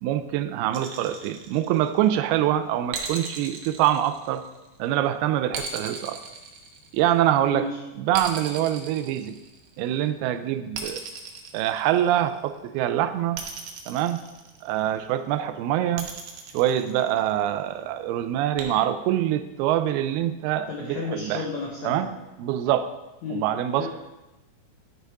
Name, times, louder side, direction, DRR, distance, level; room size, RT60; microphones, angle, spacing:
voice 1, 0.0-4.4 4.8-6.2 6.9-7.7 8.0-9.4 9.8-11.0 11.5-13.4 13.9-14.2 14.6-16.1 16.5-21.4 21.8-22.1 22.4-22.9 23.3-23.9, right 12 dB, 80° right, 11 dB, 2.4 m, -25 dB
sound 1, 0.7-2.1 2.9-4.8 5.5-7.3 8.1-9.8 10.7-12.4 13.3-14.9 16.0-17.5 18.6-18.7, right 6 dB, 65° right, 2.3 m, -37 dB
voice 2, 7.5-7.8 20.7-22.1 23.2-23.4 23.8-23.9, left 4 dB, 80° left, -1 dB, 1.6 m, -32 dB
10.0 x 6.6 x 4.7 m, 1.0 s
omnidirectional pair, 4.7 m